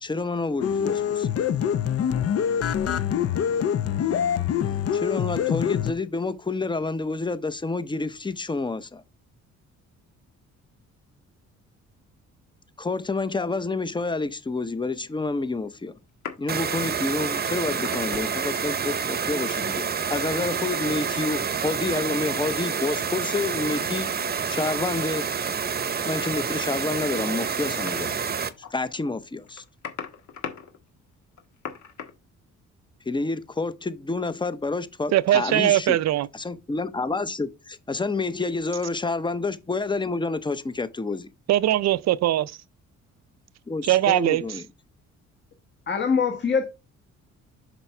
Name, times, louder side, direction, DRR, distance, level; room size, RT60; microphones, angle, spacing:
voice 1, 0.0-1.3 4.9-9.0 12.8-15.9 16.4-24.1 24.5-25.3 26.0-28.2 28.7-29.6 33.1-36.0 36.3-41.3 43.7-44.6, left 3 dB, 15° left, 0.7 m, -29 dB
sound 1, 0.6-5.9, left 8 dB, 55° left, 0.7 m, -25 dB
sound 2, 16.1-16.6 17.4-18.8 19.3-19.9 22.9-23.0 26.1-26.2 27.3-27.4 27.7-28.7 29.0-29.1 29.4-32.1, left 7 dB, 70° left, 1.6 m, -39 dB
sound 3, 16.5-28.5, right 6 dB, 30° right, 0.8 m, -28 dB
voice 2, 35.1-36.3 41.5-42.6 43.8-44.4, right 13 dB, 60° right, 0.5 m, -21 dB
voice 3, 45.9-46.6, left 6 dB, 35° left, 1.4 m, -23 dB
7.1 x 5.7 x 3.3 m
cardioid pair, 90°, 30 cm